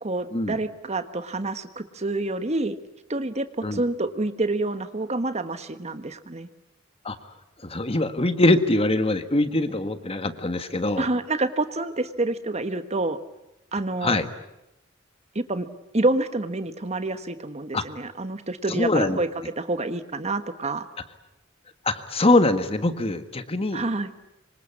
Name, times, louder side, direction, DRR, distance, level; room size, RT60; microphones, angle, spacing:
voice 1, 0.0-2.8 3.1-6.5 11.0-13.2 13.7-14.2 15.3-15.7 15.9-19.3 19.6-20.9 23.7-24.1, right 2 dB, 35° right, 10 dB, 1.3 m, -27 dB
voice 2, 7.6-11.1 13.7-14.3 17.7-17.8 18.7-19.2 21.8-23.8, left 2 dB, 30° left, 10 dB, 1.6 m, -23 dB
26.5 x 25.5 x 8.5 m, 0.89 s
head